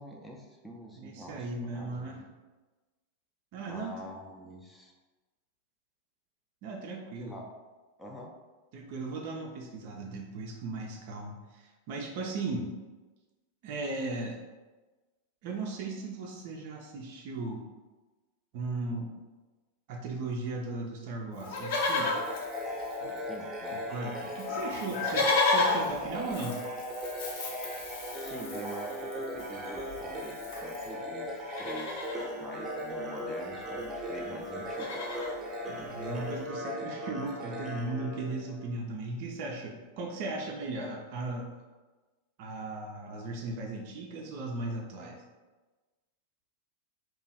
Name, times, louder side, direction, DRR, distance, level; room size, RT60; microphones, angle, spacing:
voice 1, 0.0-2.3 3.6-4.9 7.2-7.5 8.0-8.3 23.1-23.8 25.1-25.3 28.2-35.2, equal, 10° left, -1 dB, 0.5 m, -46 dB
voice 2, 1.0-2.2 3.5-3.9 6.6-7.4 8.7-12.7 13.6-14.4 15.4-17.6 18.5-19.2 19.9-22.2 23.7-26.6 35.7-41.5 42.4-45.2, right 2 dB, 45° right, 0 dB, 0.5 m, -37 dB
Livestock farm animals working animals, 21.4-23.4 23.7-23.8 24.0-30.9 31.4-32.3 33.5-33.6 33.8-34.1 34.4-35.4 36.0-36.1, left 3 dB, 50° left, 0.7 m, -33 dB
sound 1, 22.0-38.8, equal, 20° right, 0.8 m, -38 dB
3.0 x 2.3 x 4.1 m, 1.2 s
figure-of-eight pair, 90°, 0 cm